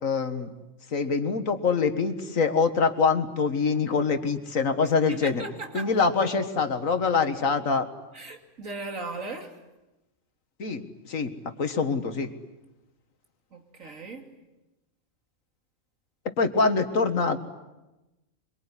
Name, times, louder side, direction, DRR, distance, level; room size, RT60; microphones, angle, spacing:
voice 1, 0.0-0.5 0.9-5.4 5.7-7.9 10.6-11.3 11.6-12.3 16.4-17.4, left 4 dB, 85° left, 9 dB, 2.1 m, -24 dB
voice 2, 4.8-5.9 8.1-9.6 13.5-14.3, right 3 dB, 80° right, 4 dB, 3.2 m, -37 dB
25.0 x 24.0 x 9.9 m, 1.0 s
omnidirectional pair, 1.4 m